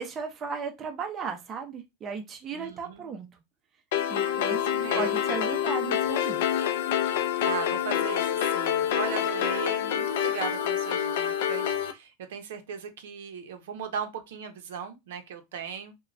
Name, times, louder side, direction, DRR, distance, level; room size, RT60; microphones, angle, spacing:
voice 1, 0.0-3.3 4.1-4.6 4.9-6.4, right 6 dB, 20° right, 0.4 m, -35 dB
voice 2, 2.5-3.1 4.2-5.1 7.4-15.9, right 7 dB, 90° right, 0.6 m, -37 dB
sound 1, 3.9-11.9, left 10 dB, 70° left, 0.3 m, -27 dB
3.0 x 2.1 x 2.4 m
supercardioid pair, 160°, 0 cm